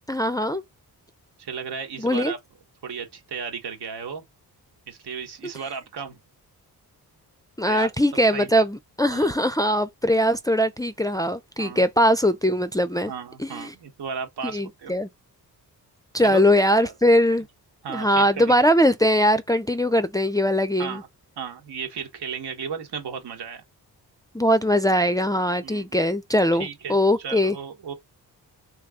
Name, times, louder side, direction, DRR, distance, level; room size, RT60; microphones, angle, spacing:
voice 1, 0.1-0.6 2.0-2.3 7.6-13.1 13.4-13.7 14.4-15.1 16.1-17.5 17.9-21.0 24.3-27.6, equal, 10° left, 0.4 m, -21 dB
voice 2, 1.4-2.4 2.8-4.2 4.9-6.2 7.7-7.9 8.3-8.6 9.1-9.3 11.6-11.9 13.1-14.9 16.2-16.9 17.8-18.5 20.8-21.1 21.4-23.6 25.6-26.0 26.5-27.9, right 6 dB, 80° right, 1.4 m, -34 dB
3.4 x 3.2 x 3.6 m
cardioid pair, 80°, 40 cm